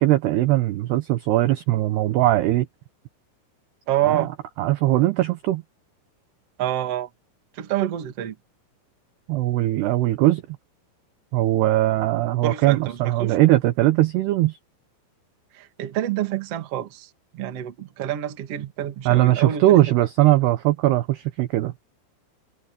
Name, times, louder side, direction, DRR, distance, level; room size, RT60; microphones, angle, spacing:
voice 1, 0.0-2.7 4.1-4.3 4.6-5.6 9.3-10.4 11.3-14.6 19.1-21.7, right 16 dB, 80° right, 2.4 m, -20 dB
voice 2, 3.9-4.3 6.6-7.1 7.5-8.3 12.4-13.4 15.5-19.8, right 12 dB, 55° right, 1.7 m, -27 dB
omnidirectional pair, 5.9 m